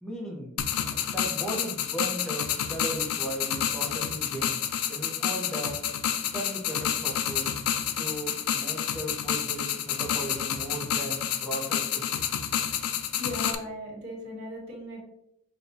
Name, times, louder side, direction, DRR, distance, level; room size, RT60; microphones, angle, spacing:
voice 1, 0.0-5.8 6.3-7.6 7.9-12.3, right 1 dB, 5° left, -2 dB, 0.7 m, -37 dB
sound 1, 0.6-13.5, left 9 dB, 80° left, 0.4 m, -29 dB
voice 2, 13.2-15.0, left 1 dB, 75° right, -3 dB, 1.4 m, -38 dB
5.9 x 2.3 x 2.7 m, 0.82 s
head